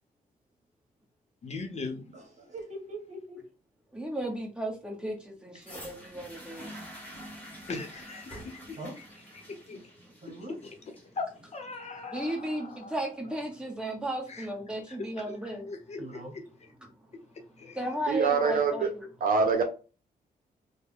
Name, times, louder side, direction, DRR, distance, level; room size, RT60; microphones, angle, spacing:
voice 1, 1.4-2.1 7.7-9.0 9.3-9.8 11.1-11.3 11.5-13.0 14.3-14.5 14.9-15.0 15.7-16.2 17.6-17.8, left 3 dB, 45° left, 0.8 m, -39 dB
voice 2, 2.1-3.4 8.8-8.9 10.2-10.6 16.0-16.3, right 1 dB, 50° right, 1.2 m, -42 dB
voice 3, 3.9-6.7 11.9-15.7 17.7-19.1, right 1 dB, 5° right, 1.2 m, -35 dB
sound 1, 5.6-13.6 14.4-14.5, equal, 10° left, 1.4 m, -48 dB
voice 4, 18.1-18.9 19.2-19.6, right 5 dB, 65° right, 0.7 m, -24 dB
3.3 x 2.2 x 3.6 m
cardioid pair, 100°, 16 cm